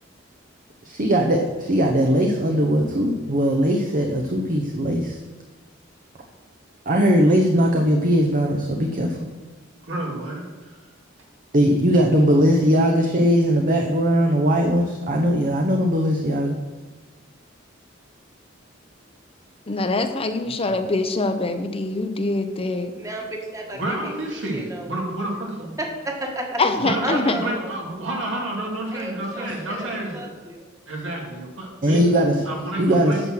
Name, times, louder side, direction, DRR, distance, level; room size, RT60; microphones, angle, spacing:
voice 1, 0.8-5.2 6.9-9.2 11.5-16.6 29.5-29.6 31.8-32.4 32.8-33.1, equal, 45° right, 2 dB, 0.8 m, -19 dB
voice 2, 9.8-10.8 20.6-20.8 23.7-25.8 26.8-30.3 30.9-32.0 32.5-33.3, right 1 dB, 75° right, -1 dB, 2.4 m, -29 dB
voice 3, 19.7-22.9 26.6-27.4, left 2 dB, 30° left, 7 dB, 0.6 m, -24 dB
voice 4, 22.9-25.0 25.8-26.6 27.0-27.7 28.9-30.7, right 1 dB, 15° right, 1 dB, 1.5 m, -33 dB
8.8 x 6.3 x 6.3 m, 1.3 s
head